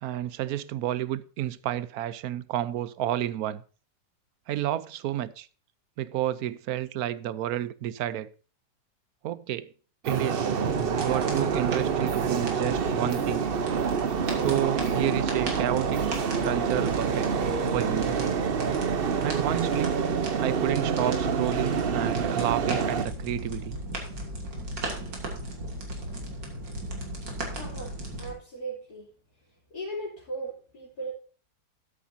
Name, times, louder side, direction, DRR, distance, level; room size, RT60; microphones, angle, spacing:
voice 1, 0.0-3.6 4.5-5.5 6.0-8.3 9.2-9.7 10.0-10.5 11.0-13.5 14.3-17.3 17.7-18.2 19.2-20.0 20.4-23.8, right 12 dB, 65° right, 1.1 m, -30 dB
sound 1, 10.0-23.0, right 6 dB, 45° right, 0.7 m, -27 dB
sound 2, 10.7-28.3, right 1 dB, 85° right, 3.5 m, -36 dB
voice 2, 27.5-29.1 29.7-31.1, right 2 dB, 60° left, 3.8 m, -37 dB
13.0 x 10.0 x 2.7 m
omnidirectional pair, 1.9 m